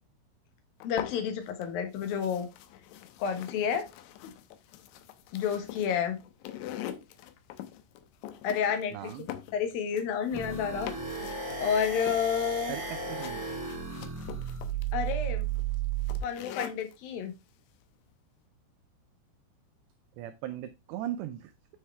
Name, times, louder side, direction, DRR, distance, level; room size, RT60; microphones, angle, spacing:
sound 1, 0.8-1.7 2.0-17.0, left 12 dB, 80° left, 2.8 m, -44 dB
voice 1, 0.8-2.5 3.2-3.9 5.3-6.2 8.4-9.1 9.5-10.9 11.6-12.7 14.9-15.5 16.2-17.3, left 7 dB, 65° left, 6 dB, 2.4 m, -30 dB
voice 2, 8.9-9.3 12.7-13.4 20.2-21.5, right 12 dB, 90° right, 10 dB, 2.4 m, -38 dB
sound 2, 10.3-16.2, right 7 dB, 10° right, 1.7 m, -34 dB
9.9 x 4.7 x 3.3 m, 0.23 s
omnidirectional pair, 5.7 m